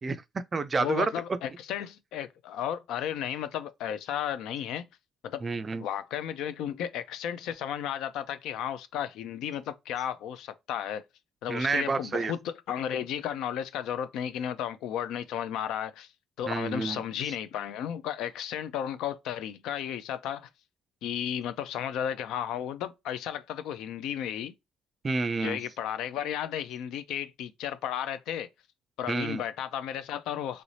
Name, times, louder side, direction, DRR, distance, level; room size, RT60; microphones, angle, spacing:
voice 1, 0.0-1.1 5.4-5.8 11.5-12.3 16.5-17.3 25.0-25.6 29.1-29.4, right 4 dB, 25° right, 0.3 m, -30 dB
voice 2, 0.8-4.8 5.2-5.4 5.8-11.0 11.4-16.1 16.4-20.5 21.0-24.5 25.4-28.5 29.0-30.6, left 9 dB, 80° left, 0.5 m, -34 dB
3.0 x 2.6 x 3.2 m
cardioid pair, 160°, 0 cm